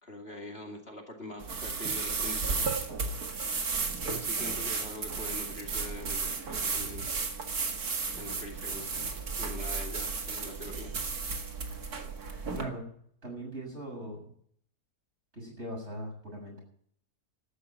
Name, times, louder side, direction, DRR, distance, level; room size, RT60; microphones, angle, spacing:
voice 1, 0.0-2.7 4.1-7.1 8.1-8.9 9.4-10.9, left 1 dB, 40° left, 1 dB, 2.7 m, -43 dB
sound 1, 1.4-12.6, right 4 dB, 75° right, 2.5 m, -33 dB
voice 2, 12.5-12.9 13.2-14.3 15.3-16.6, right 1 dB, 45° right, 0 dB, 7.8 m, -40 dB
13.0 x 10.5 x 9.3 m, 0.63 s
omnidirectional pair, 1.6 m